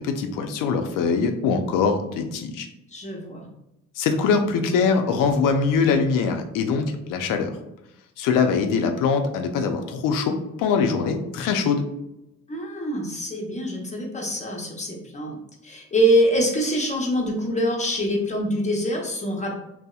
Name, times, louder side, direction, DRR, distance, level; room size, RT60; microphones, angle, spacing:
voice 1, 0.0-2.7 4.0-7.5 8.2-11.8, left 5 dB, 80° left, 6 dB, 0.5 m, -23 dB
voice 2, 2.9-3.5 12.5-15.4 15.6-19.6, equal, 20° left, 0 dB, 0.7 m, -24 dB
2.7 x 2.0 x 2.3 m, 0.88 s
supercardioid pair, 65°, 32 cm